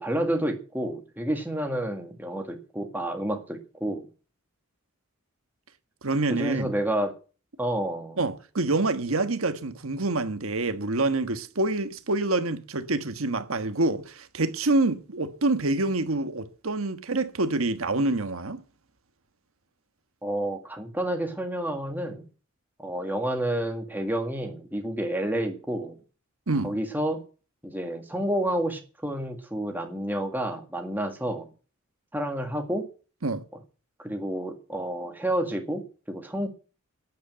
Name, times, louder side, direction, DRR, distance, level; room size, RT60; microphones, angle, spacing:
voice 1, 0.0-4.1 6.3-7.1 7.6-8.2 20.2-22.2 22.8-26.0 26.6-27.2 27.6-31.5 32.1-32.9 34.0-36.5, right 1 dB, 10° right, 1.8 m, -29 dB
voice 2, 6.0-6.7 8.2-18.6 26.5-26.8 33.2-33.4, right 2 dB, 70° right, 1.3 m, -26 dB
9.4 x 8.5 x 9.0 m
head